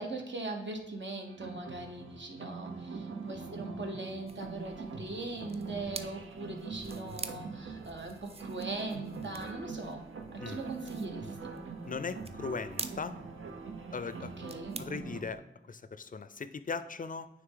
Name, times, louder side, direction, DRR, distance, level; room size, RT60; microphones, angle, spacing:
voice 1, 0.0-10.0 10.3-11.5 14.2-14.8, right 2 dB, 65° right, 2 dB, 1.0 m, -40 dB
sound 1, 1.3-15.2, right 4 dB, 85° right, 0.6 m, -43 dB
sound 2, 4.3-15.4, right 3 dB, 30° right, 0.4 m, -48 dB
voice 2, 11.9-13.2 13.9-14.3 14.8-17.3, left 5 dB, 45° left, 12 dB, 0.4 m, -38 dB
9.2 x 3.1 x 3.7 m, 0.95 s
wide cardioid pair, 80°, 20 cm